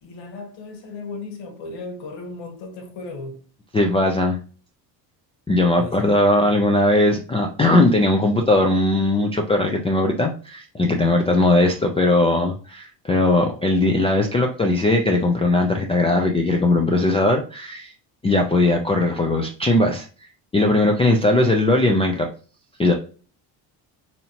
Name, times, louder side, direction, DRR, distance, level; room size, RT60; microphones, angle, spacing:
voice 1, 0.0-3.4 5.8-6.1 21.3-21.5, left 3 dB, 65° left, 1.4 m, -35 dB
voice 2, 3.7-4.4 5.5-17.9 18.2-20.1 20.5-22.3 22.8-22.9, left 2 dB, 15° left, 0.4 m, -19 dB
4.1 x 2.8 x 2.8 m
supercardioid pair, 90°, 50 cm